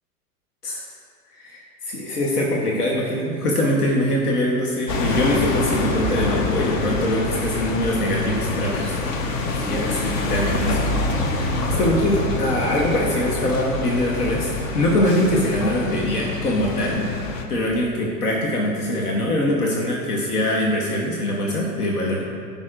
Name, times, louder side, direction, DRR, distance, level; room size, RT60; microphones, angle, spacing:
voice 1, 1.4-17.1 17.5-22.2, left 1 dB, 85° left, -2 dB, 1.2 m, -23 dB
sound 1, 4.9-17.4, left 2 dB, 60° left, 1.1 m, -26 dB
14.0 x 5.2 x 2.5 m, 2.5 s
hypercardioid pair, 90°, 44 cm